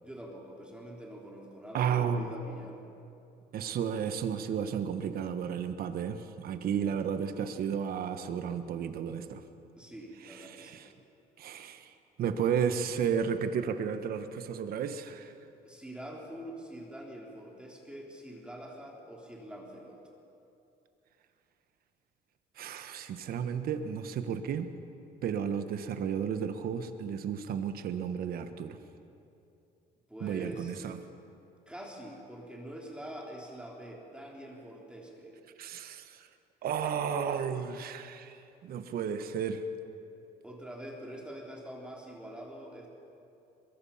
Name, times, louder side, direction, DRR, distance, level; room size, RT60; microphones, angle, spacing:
voice 1, 0.0-2.8 9.8-10.8 15.6-20.0 30.1-30.8 31.7-35.4 40.4-42.9, right 1 dB, 5° right, -2 dB, 3.5 m, -45 dB
voice 2, 1.7-2.3 3.5-9.4 10.5-10.9 11.4-11.9 12.2-15.3 22.6-24.7 25.2-28.8 30.2-31.0 35.6-36.3 36.6-39.6, right 7 dB, 60° right, 9 dB, 1.4 m, -33 dB
22.5 x 22.0 x 5.8 m, 2.7 s
cardioid pair, 110°, 17 cm